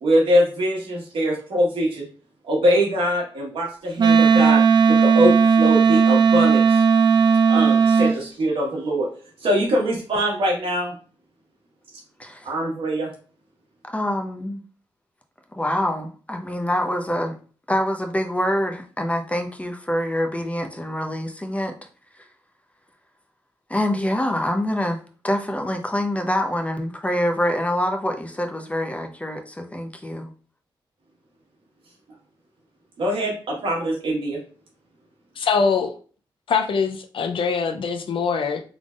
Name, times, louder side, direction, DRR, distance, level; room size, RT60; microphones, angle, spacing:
voice 1, 0.0-2.1 2.5-4.6 4.9-6.8 7.5-9.1 9.4-10.9 12.4-13.1 33.0-34.4, equal, 75° right, 1.5 m, -22 dB
Wind instrument woodwind instrument, 4.0-8.1, right 6 dB, 50° right, 0.4 m, -16 dB
voice 2, 13.8-14.6 15.5-17.3 17.7-21.7 23.7-25.0 25.2-30.3, left 1 dB, 15° left, 0.7 m, -25 dB
voice 3, 35.4-35.9 36.5-38.6, left 5 dB, 70° left, 0.5 m, -23 dB
3.7 x 3.4 x 2.4 m
cardioid pair, 65°, 9 cm